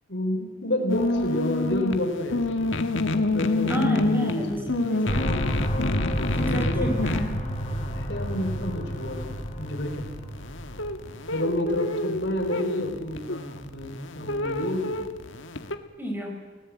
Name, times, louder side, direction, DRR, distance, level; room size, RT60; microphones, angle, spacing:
voice 1, 0.1-2.4 3.1-4.8 5.2-5.4 6.2-6.9 7.9-10.0 11.3-14.9, left 1 dB, 65° left, 4 dB, 4.1 m, -30 dB
sound 1, 0.9-15.8, left 2 dB, 90° left, 1.6 m, -29 dB
voice 2, 3.7-5.3 6.3-7.3 16.0-16.4, equal, 10° right, 2 dB, 4.7 m, -31 dB
sound 2, 5.1-11.4, equal, 35° left, 2.5 m, -30 dB
30.0 x 18.5 x 8.5 m, 1.4 s
head